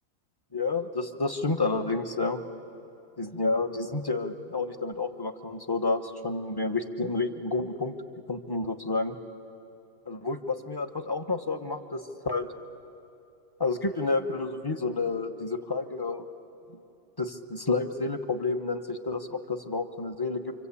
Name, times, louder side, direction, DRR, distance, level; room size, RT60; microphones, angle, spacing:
voice 1, 0.5-2.4 3.2-7.9 8.3-9.2 10.1-12.5 13.6-16.2 17.2-20.5, left 3 dB, 20° left, 6 dB, 1.0 m, -30 dB
28.0 x 25.0 x 8.5 m, 2.7 s
omnidirectional pair, 1.5 m